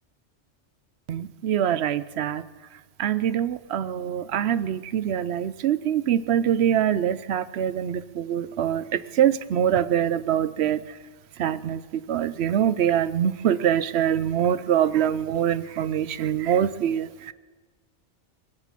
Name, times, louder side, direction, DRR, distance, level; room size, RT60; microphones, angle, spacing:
voice 1, 1.1-2.4 3.0-11.0 11.4-17.3, right 10 dB, 70° right, 16 dB, 0.9 m, -24 dB
22.5 x 7.7 x 7.6 m, 1.3 s
omnidirectional pair, 1.2 m